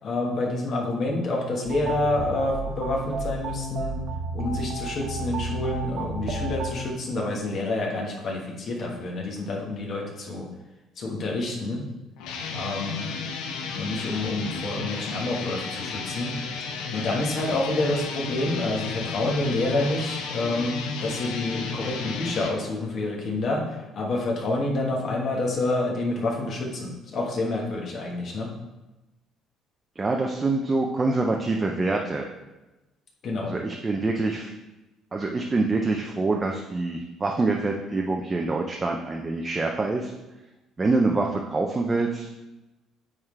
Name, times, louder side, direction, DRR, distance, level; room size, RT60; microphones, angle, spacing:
voice 1, 0.0-4.0 4.3-10.5 11.0-11.8 12.5-13.1 13.8-16.4 16.9-28.5 33.2-33.5, left 2 dB, 40° left, -1 dB, 1.3 m, -28 dB
sound 1, 1.7-6.7, right 3 dB, 50° right, 0.9 m, -32 dB
sound 2, 12.2-22.6, left 4 dB, 85° left, 0.8 m, -33 dB
voice 2, 30.0-32.3 33.4-34.5 35.1-40.1 40.8-42.3, right 3 dB, 15° right, 1 dB, 0.4 m, -25 dB
9.1 x 3.7 x 3.2 m, 1.0 s
cardioid pair, 155°, 0 cm